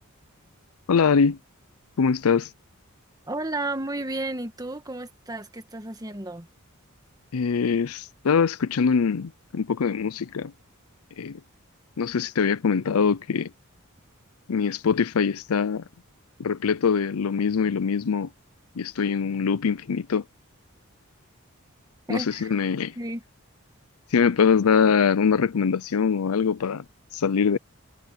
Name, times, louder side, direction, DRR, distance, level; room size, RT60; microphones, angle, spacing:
voice 1, 0.9-1.4 2.0-2.5 7.3-10.5 11.2-11.4 12.0-13.5 14.5-15.8 16.4-18.3 18.8-20.2 22.1-22.9 24.1-26.8 27.1-27.6, left 6 dB, 80° left, 0.5 m, -23 dB
voice 2, 3.3-6.5 22.1-22.5 23.0-23.2, right 2 dB, 15° right, 1.7 m, -32 dB
head